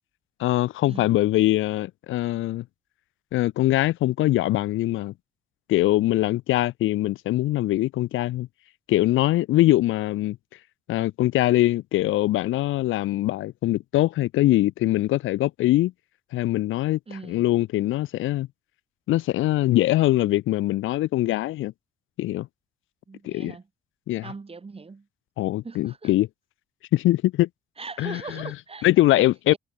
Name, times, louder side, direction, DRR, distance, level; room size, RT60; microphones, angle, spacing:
voice 1, 0.4-2.6 3.3-5.1 5.7-8.5 8.9-10.4 10.9-15.9 16.3-17.0 17.3-18.5 19.1-21.7 22.2-22.5 23.2-23.5 24.1-24.2 25.4-26.3 26.9-27.5 28.0-28.5 28.8-29.5, left 16 dB, 85° left, 0.8 m, -22 dB
voice 2, 17.1-17.4 23.1-23.7 24.2-25.1 25.6-26.1 27.8-28.9 29.2-29.6, right 4 dB, 30° right, 7.9 m, -40 dB
cardioid pair, 90°, 20 cm